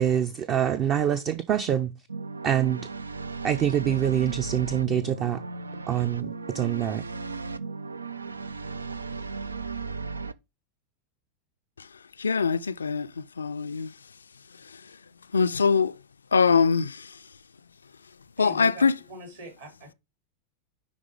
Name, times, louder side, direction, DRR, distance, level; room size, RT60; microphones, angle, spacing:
voice 1, 0.0-1.9 2.4-2.8 3.4-5.4 5.9-6.3 6.5-7.0, right 9 dB, 35° right, 0.6 m, -25 dB
sound 1, 2.1-10.3, right 4 dB, 75° right, 0.4 m, -36 dB
voice 2, 12.2-13.9 15.3-15.9 16.3-17.1 18.4-18.9, left 5 dB, 75° left, 0.4 m, -23 dB
voice 3, 18.4-19.9, right 1 dB, 60° right, 3.8 m, -43 dB
10.5 x 3.8 x 5.0 m
figure-of-eight pair, 90°, 0 cm